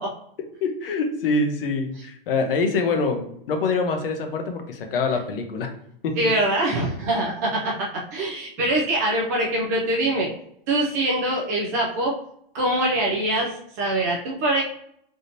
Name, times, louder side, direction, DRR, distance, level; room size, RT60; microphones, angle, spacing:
voice 1, 0.6-5.7 6.0-6.3, left 4 dB, 70° left, 5 dB, 0.8 m, -25 dB
voice 2, 6.2-10.3 10.7-12.2 12.5-14.6, right 1 dB, 20° right, -2 dB, 0.3 m, -23 dB
3.5 x 2.7 x 2.6 m, 0.71 s
hypercardioid pair, 160°, 29 cm